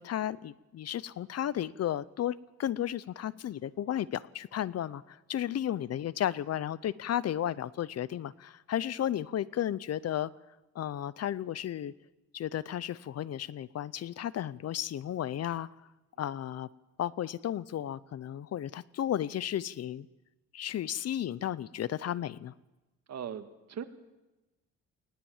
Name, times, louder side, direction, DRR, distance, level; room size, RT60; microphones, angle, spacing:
voice 1, 0.0-10.3 10.7-11.9 12.3-15.7 16.2-16.7 17.0-20.1 20.5-22.5, left 11 dB, 55° left, 20 dB, 0.7 m, -33 dB
voice 2, 23.1-23.8, right 8 dB, 60° right, 9 dB, 1.8 m, -39 dB
19.5 x 18.5 x 7.3 m, 1.0 s
cardioid pair, 90°, 30 cm